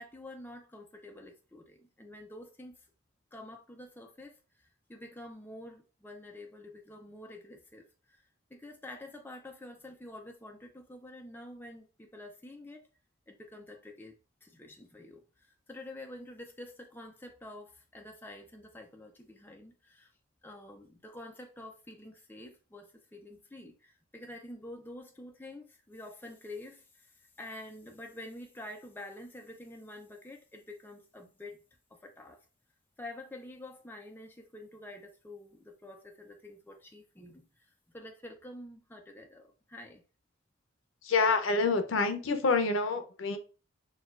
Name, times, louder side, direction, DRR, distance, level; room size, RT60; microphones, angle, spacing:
voice 1, 0.0-2.8 3.3-8.2 8.5-12.9 13.3-14.2 14.4-20.1 20.4-31.6 31.9-32.4 33.0-40.0, left 1 dB, 10° left, 0.4 m, -48 dB
voice 2, 41.0-43.4, left 4 dB, 80° left, 0.6 m, -27 dB
6.1 x 2.3 x 2.4 m
head